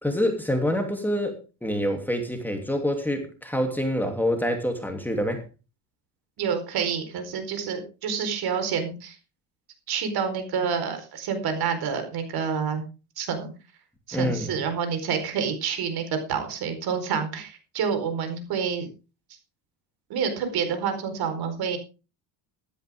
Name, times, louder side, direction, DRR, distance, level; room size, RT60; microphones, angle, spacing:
voice 1, 0.0-1.4 1.6-5.4 14.1-14.6, equal, 5° left, 4 dB, 2.8 m, -26 dB
voice 2, 6.4-9.2 9.9-12.8 13.2-13.5 14.1-18.9 20.1-21.8, right 6 dB, 55° right, 8 dB, 4.5 m, -28 dB
15.0 x 12.5 x 3.6 m, 0.32 s
cardioid pair, 125°, 43 cm